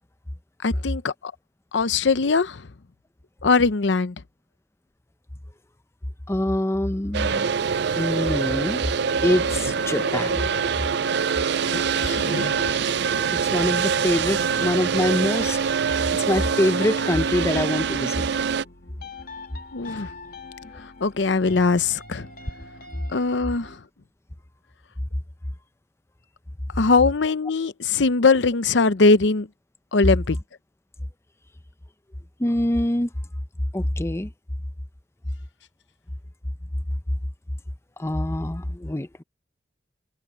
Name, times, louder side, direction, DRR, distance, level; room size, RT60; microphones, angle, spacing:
voice 1, 0.6-1.3 1.7-2.6 3.4-4.1 11.7-12.5 19.7-20.1 21.0-22.3 23.1-23.8 26.8-29.5 29.9-30.4, left 4 dB, 70° left, 0.7 m, -21 dB
voice 2, 6.3-7.6 7.9-8.8 9.2-10.5 13.3-15.6 16.1-18.2 32.4-33.1 33.7-34.3 38.0-39.2, left 1 dB, 15° left, 0.7 m, -24 dB
sound 1, 7.1-18.6, right 6 dB, 65° right, 0.5 m, -24 dB
sound 2, 7.3-23.8, left 2 dB, 55° left, 2.8 m, -42 dB
head